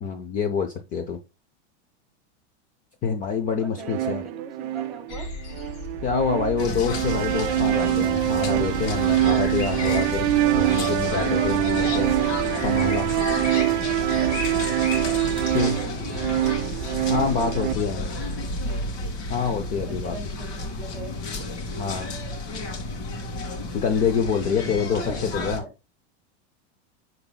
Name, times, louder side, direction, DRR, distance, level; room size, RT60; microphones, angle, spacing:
voice 1, 0.0-1.2 3.0-4.2 6.0-12.1 12.6-13.1 15.5-15.8 17.1-18.1 19.3-20.2 21.8-22.1 23.7-25.6, left 6 dB, 25° left, 0.5 m, -26 dB
voice 2, 3.6-5.3 15.3-16.4 17.5-18.9 19.8-21.2 24.4-25.7, right 2 dB, ahead, 1.0 m, -41 dB
sound 1, 3.8-17.7, right 14 dB, 45° right, 0.4 m, -24 dB
sound 2, 5.1-19.1, left 1 dB, 80° left, 1.9 m, -36 dB
sound 3, 6.6-25.6, left 2 dB, 65° left, 2.4 m, -32 dB
11.0 x 4.0 x 2.2 m
supercardioid pair, 155°, 35 cm